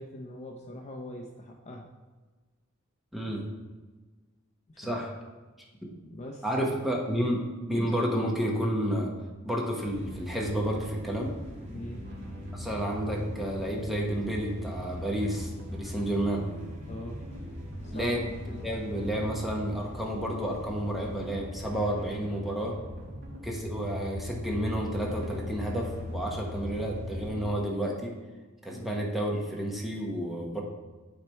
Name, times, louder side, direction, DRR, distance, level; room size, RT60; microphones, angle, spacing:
voice 1, 0.0-1.9 4.7-5.0 6.0-6.4 11.7-12.0 16.9-17.2 17.5-17.6 17.8-18.1 28.7-28.9, left 1 dB, 35° left, 0 dB, 0.6 m, -42 dB
voice 2, 3.1-3.4 4.8-5.1 6.4-7.4 7.7-9.1 9.4-11.3 12.5-16.4 17.9-22.7 23.4-28.1 28.6-30.6, right 1 dB, ahead, -2 dB, 1.0 m, -31 dB
sound 1, 9.8-27.5, left 1 dB, 35° right, 1.8 m, -41 dB
sound 2, 12.0-27.5, right 1 dB, 50° right, 1.1 m, -46 dB
9.2 x 3.3 x 4.4 m, 1.3 s
head